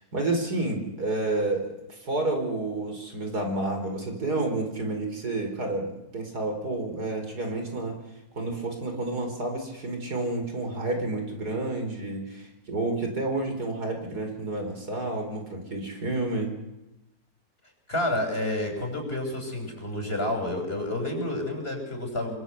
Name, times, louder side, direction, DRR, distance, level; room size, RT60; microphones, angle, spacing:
voice 1, 0.1-8.0 8.4-16.5, right 2 dB, 85° right, 4 dB, 5.4 m, -30 dB
voice 2, 17.9-22.4, left 1 dB, 40° left, 4 dB, 6.3 m, -29 dB
27.5 x 25.0 x 8.1 m, 0.99 s
omnidirectional pair, 1.6 m